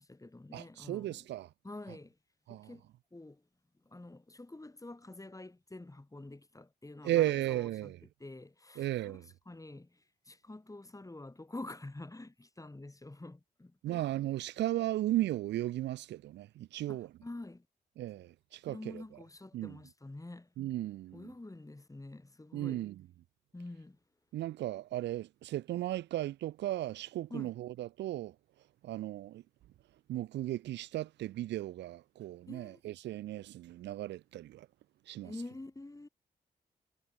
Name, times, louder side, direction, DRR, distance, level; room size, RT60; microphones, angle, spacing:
voice 1, 0.0-1.2 1.6-2.1 2.5-2.9 3.1-3.4 3.8-7.9 8.2-9.2 9.5-14.1 16.9-17.6 18.7-20.5 21.1-22.8 23.5-24.0 27.3-27.5 32.5-32.8 35.2-36.1, left 2 dB, 20° left, 4.8 m, -47 dB
voice 2, 0.5-1.5 2.5-2.7 7.0-8.0 8.8-9.3 13.8-17.1 18.0-19.0 19.5-19.8 20.6-21.3 22.5-23.0 24.3-28.3 28.8-29.4 30.1-34.7 35.1-35.3, right 14 dB, 85° right, 1.3 m, -35 dB
supercardioid pair, 55°, 18 cm